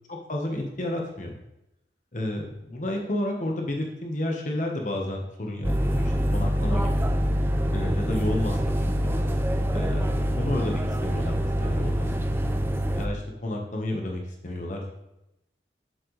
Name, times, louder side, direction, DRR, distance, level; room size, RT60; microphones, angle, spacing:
voice 1, 0.1-1.3 2.1-7.1 7.7-9.2 9.7-12.1 12.9-15.0, left 1 dB, 45° left, 1 dB, 1.2 m, -31 dB
sound 1, 5.6-13.1, equal, 15° right, 0.4 m, -25 dB
7.6 x 7.6 x 3.2 m, 0.89 s
head